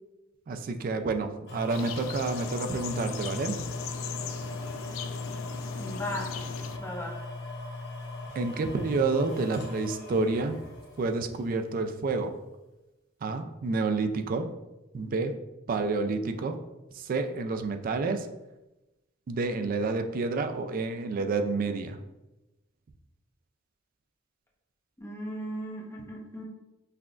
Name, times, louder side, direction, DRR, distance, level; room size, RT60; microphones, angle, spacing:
voice 1, 0.5-3.6 8.4-10.6 11.0-12.3 13.2-14.5 14.9-15.3 15.7-16.6 16.9-18.3 19.3-22.0, right 3 dB, 45° right, 7 dB, 0.3 m, -29 dB
sound 1, 1.5-11.5 12.1-12.2, left 2 dB, 65° left, 0.9 m, -38 dB
sound 2, 1.7-6.8, left 7 dB, 85° left, 0.3 m, -39 dB
voice 2, 5.8-6.3 6.8-7.1 25.0-26.4, equal, 15° left, -3 dB, 0.7 m, -36 dB
5.6 x 2.3 x 2.4 m, 0.99 s
head